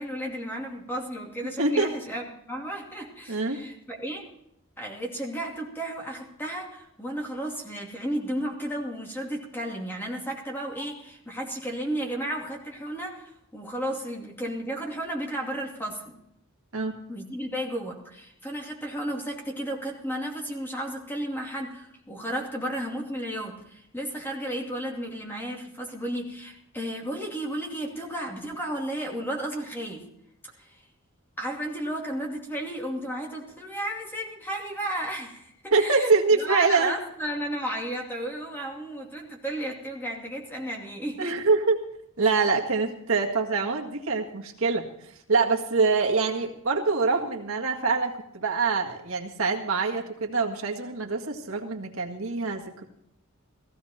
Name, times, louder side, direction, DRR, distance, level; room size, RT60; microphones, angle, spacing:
voice 1, 0.0-4.3 4.8-16.2 17.1-30.1 30.6-30.8 31.4-41.4, right 1 dB, 10° left, 0 dB, 2.6 m, -33 dB
voice 2, 1.6-1.9 3.3-3.6 16.7-17.0 35.7-36.9 41.2-41.8 42.2-44.9 45.3-52.8, right 4 dB, 70° right, 1 dB, 1.8 m, -25 dB
16.0 x 15.5 x 4.3 m, 0.75 s
head